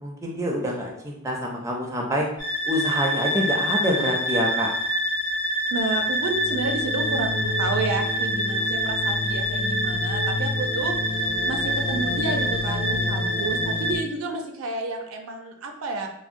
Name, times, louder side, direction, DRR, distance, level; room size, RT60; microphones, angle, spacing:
voice 1, 0.0-2.3 2.7-4.7, equal, 15° right, -1 dB, 0.4 m, -26 dB
sound 1, 2.4-14.0, equal, 20° left, 0.8 m, -25 dB
voice 2, 5.7-16.1, right 3 dB, 80° right, 4 dB, 0.4 m, -30 dB
3.7 x 2.0 x 2.5 m, 0.76 s
head